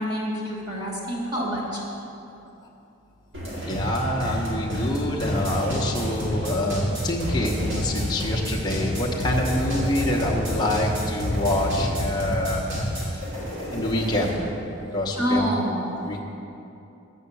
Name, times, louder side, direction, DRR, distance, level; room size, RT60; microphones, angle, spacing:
voice 1, 0.0-1.8 15.2-15.8, equal, 20° right, -6 dB, 1.6 m, -26 dB
sound 1, 3.3-14.4, equal, 65° right, 2.2 m, -28 dB
voice 2, 3.6-12.6 13.7-14.4 14.9-15.5 16.0-16.2, left 1 dB, 20° left, -2 dB, 0.9 m, -26 dB
8.1 x 5.6 x 6.9 m, 2.8 s
head